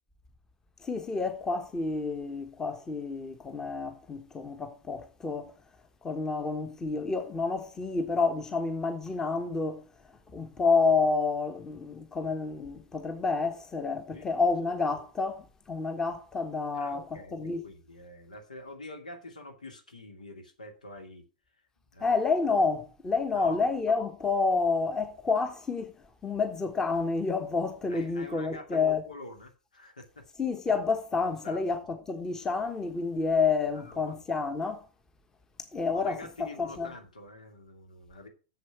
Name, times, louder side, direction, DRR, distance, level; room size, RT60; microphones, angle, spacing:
voice 1, 0.8-5.5 6.0-9.8 10.3-17.0 17.3-17.6 22.0-25.9 26.2-29.0 30.4-31.8 32.1-34.8 35.7-36.9, left 4 dB, 15° left, 1.4 m, -29 dB
voice 2, 14.1-14.5 16.7-21.2 21.9-22.1 23.3-23.7 27.9-30.3 31.2-31.6 33.7-34.2 35.9-38.3, left 2 dB, 75° left, 2.5 m, -46 dB
8.1 x 7.3 x 6.9 m
figure-of-eight pair, 95°, 4 cm